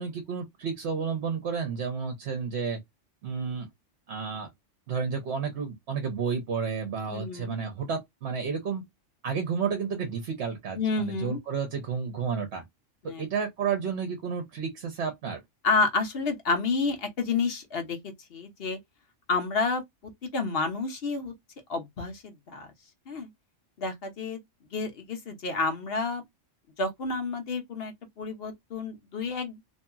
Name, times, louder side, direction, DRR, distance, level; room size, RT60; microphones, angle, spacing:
voice 1, 0.0-2.8 3.2-3.7 4.1-4.5 4.9-8.8 9.2-12.6 13.0-15.4, right 6 dB, 65° right, 1.0 m, -31 dB
voice 2, 7.1-7.6 10.7-11.4 13.0-13.2 15.6-18.8 19.3-21.3 21.7-22.7 23.1-23.3 23.8-24.4 24.7-26.2 26.8-29.6, left 4 dB, 55° left, 1.0 m, -30 dB
2.8 x 2.8 x 2.2 m
omnidirectional pair, 1.3 m